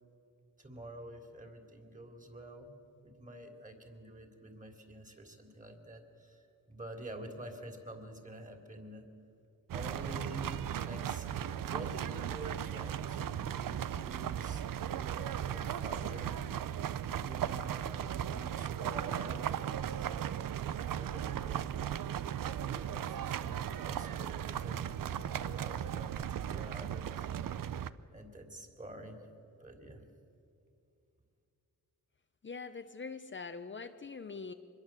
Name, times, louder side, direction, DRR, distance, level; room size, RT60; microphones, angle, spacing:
voice 1, 0.6-2.7 3.0-9.0 9.7-10.4 10.7-16.4 17.1-20.4 20.7-21.7 22.7-27.3 28.1-29.2 29.6-30.0, right 1 dB, 25° right, 4 dB, 3.4 m, -48 dB
sound 1, 9.7-27.9, right 10 dB, 85° right, 0.7 m, -37 dB
voice 2, 32.4-34.5, left 4 dB, 35° left, 7 dB, 0.9 m, -43 dB
25.0 x 21.5 x 7.5 m, 2.5 s
wide cardioid pair, 95°, 33 cm